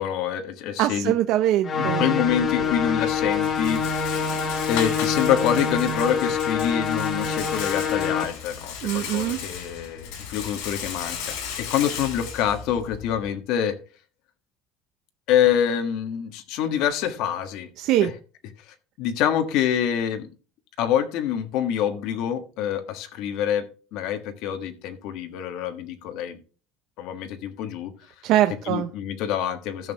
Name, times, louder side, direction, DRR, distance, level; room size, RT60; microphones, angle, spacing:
voice 1, 0.0-1.1 1.8-4.3 4.7-13.8 15.3-17.7 18.0-18.1 19.0-20.3 20.8-26.4 27.0-27.9 28.6-29.9, left 9 dB, 60° left, 7 dB, 1.4 m, -26 dB
voice 2, 0.8-2.0 8.8-9.4 17.8-18.1 28.2-28.9, right 13 dB, 55° right, 8 dB, 0.6 m, -22 dB
sound 1, 1.6-8.2, left 5 dB, 30° left, 1.2 m, -26 dB
Rattle, 2.2-13.3, left 7 dB, 80° left, 3.2 m, -36 dB
14.5 x 6.3 x 3.3 m, 0.36 s
cardioid pair, 155°, 0 cm